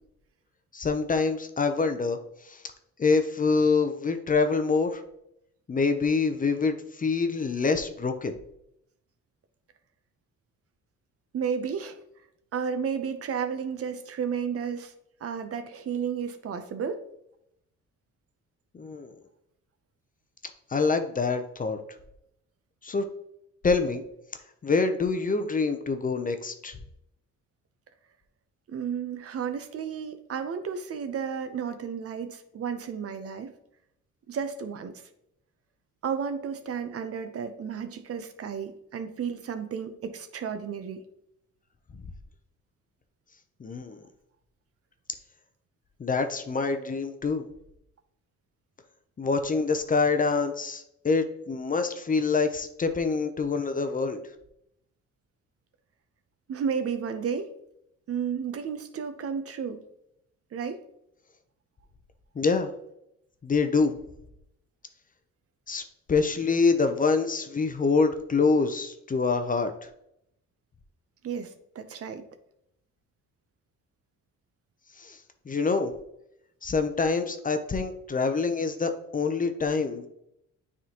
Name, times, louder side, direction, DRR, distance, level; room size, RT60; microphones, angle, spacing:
voice 1, 0.7-2.2 2.4-2.6 3.0-5.0 5.7-8.3 18.7-19.1 20.7-21.8 22.8-23.1 23.6-24.0 24.6-26.8 43.6-44.0 46.0-47.5 49.2-54.2 62.4-62.7 63.4-63.9 65.7-65.8 66.1-69.7 75.0-75.2 75.5-75.9 76.6-80.1, left 4 dB, 25° left, 7 dB, 0.6 m, -26 dB
voice 2, 11.3-12.0 12.5-14.9 15.2-17.0 28.7-33.5 34.3-35.0 36.0-41.0 56.5-57.5 58.1-59.9 60.5-60.8 71.2-72.3, right 7 dB, 50° right, 9 dB, 0.7 m, -32 dB
9.1 x 3.6 x 2.9 m, 0.78 s
cardioid pair, 90°, 30 cm